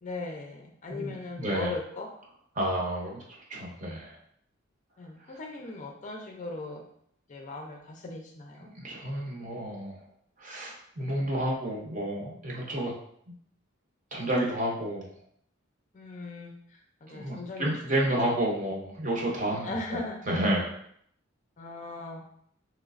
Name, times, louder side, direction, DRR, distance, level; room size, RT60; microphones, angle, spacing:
voice 1, 0.0-2.1 5.0-6.8 7.3-8.7 15.9-17.7 19.6-20.2 21.6-22.2, left 2 dB, 35° left, 1 dB, 0.4 m, -38 dB
voice 2, 0.9-1.7 2.5-4.2 5.3-5.4 8.6-10.0 10.4-12.9 14.1-15.1 17.1-20.0 20.3-20.8, right 1 dB, 40° right, -2 dB, 0.7 m, -30 dB
3.2 x 3.0 x 2.4 m, 0.66 s
head